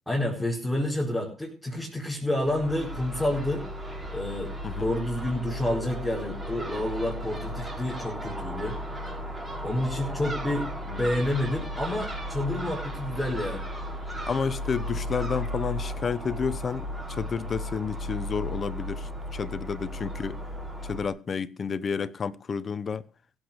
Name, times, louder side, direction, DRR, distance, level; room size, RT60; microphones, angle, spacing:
voice 1, 0.1-3.7 4.1-8.8 9.6-13.6, left 1 dB, 5° left, 4.7 m, -29 dB
Crow / Gull seagull, 2.4-21.1, equal, 15° right, 5.4 m, -35 dB
voice 2, 14.3-20.4 20.8-23.0, left 6 dB, 35° left, 0.9 m, -31 dB
16.0 x 8.1 x 6.7 m
cardioid pair, 105°, 0 cm